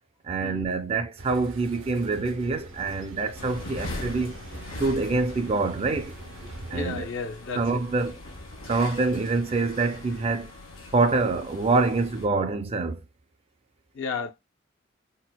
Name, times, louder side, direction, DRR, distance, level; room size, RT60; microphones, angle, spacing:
voice 1, 0.2-4.4 4.8-6.2 6.7-7.1 7.5-8.2 8.7-10.5 10.9-13.0, right 3 dB, 30° right, 0.4 m, -25 dB
sound 1, 1.2-6.8, right 1 dB, 80° right, 0.6 m, -43 dB
sound 2, 3.4-12.3, left 2 dB, 80° left, 0.9 m, -41 dB
voice 2, 6.7-7.8 13.9-14.3, left 4 dB, 60° left, 0.5 m, -33 dB
4.2 x 2.1 x 2.2 m
head